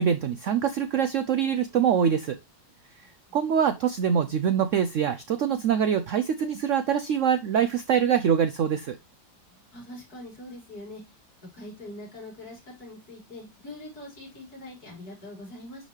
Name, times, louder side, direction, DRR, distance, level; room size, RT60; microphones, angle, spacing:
voice 1, 0.0-2.4 3.3-9.0, right 8 dB, 85° right, 0.6 m, -24 dB
voice 2, 3.0-3.4 9.5-11.2 11.5-15.9, left 1 dB, 55° left, 5.1 m, -43 dB
11.0 x 4.1 x 3.1 m
omnidirectional pair, 2.0 m